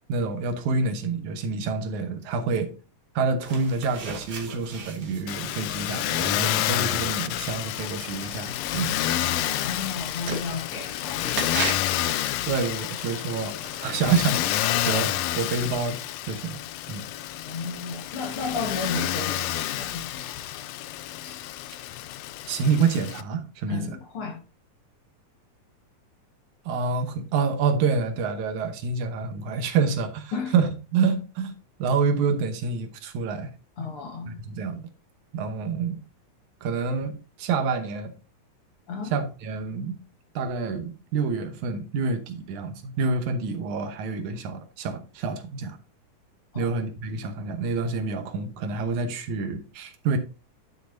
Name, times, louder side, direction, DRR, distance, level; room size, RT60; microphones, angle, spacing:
voice 1, 0.1-2.7 3.2-9.0 12.5-16.0 16.3-16.6 16.9-17.1 22.5-24.0 26.7-31.5 31.8-33.5 33.8-33.9 34.3-34.8 35.3-36.0 36.6-38.1 39.0-40.0 40.4-45.8 46.6-50.2, right 4 dB, 75° right, 2.4 m, -27 dB
sound 1, 3.4-11.9, right 4 dB, 45° right, 1.5 m, -38 dB
Motor vehicle (road), 5.3-23.2, left 13 dB, 90° left, 1.4 m, -29 dB
voice 2, 9.4-12.2 17.4-20.5 21.2-21.5 23.7-24.4 30.3-30.5 33.8-34.3 38.9-39.1 46.5-46.7, left 4 dB, 55° left, 2.1 m, -34 dB
11.0 x 6.3 x 2.7 m
omnidirectional pair, 3.5 m